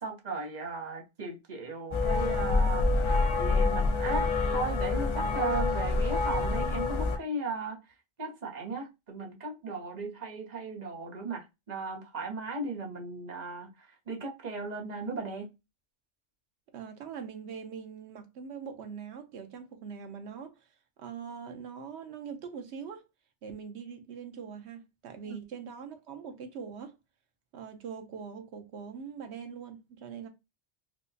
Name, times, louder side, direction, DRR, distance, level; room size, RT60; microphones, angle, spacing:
voice 1, 0.0-2.9 3.4-7.8 8.2-15.5 25.3-25.4, right 3 dB, 45° right, 0.9 m, -37 dB
sound 1, 1.9-7.2, left 3 dB, 45° left, 0.4 m, -27 dB
voice 2, 16.7-20.7 21.0-23.1 23.4-26.9 27.5-30.3, right 6 dB, 80° right, 1.0 m, -42 dB
4.5 x 2.1 x 2.6 m
omnidirectional pair, 1.1 m